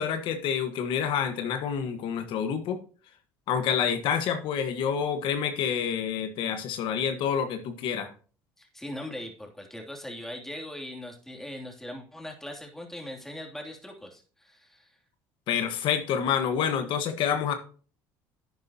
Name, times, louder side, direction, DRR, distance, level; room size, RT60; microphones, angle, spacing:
voice 1, 0.0-2.8 3.5-8.1 15.5-17.5, left 8 dB, 65° left, 7 dB, 1.4 m, -28 dB
voice 2, 8.6-14.9, left 1 dB, 5° left, 1 dB, 3.0 m, -40 dB
11.0 x 9.1 x 2.9 m, 0.40 s
supercardioid pair, 80°, 9 cm